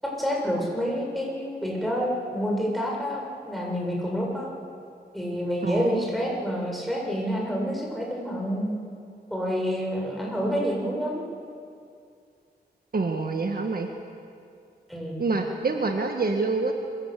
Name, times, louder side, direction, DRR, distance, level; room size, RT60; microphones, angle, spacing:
voice 1, 0.0-4.5 5.1-8.7 9.3-11.2 14.9-15.3, equal, ahead, -2 dB, 7.4 m, -28 dB
voice 2, 5.6-6.0 12.9-13.9 15.2-16.7, right 3 dB, 60° right, 3 dB, 1.7 m, -26 dB
26.5 x 16.5 x 8.4 m, 2.3 s
wide cardioid pair, 70°, 17 cm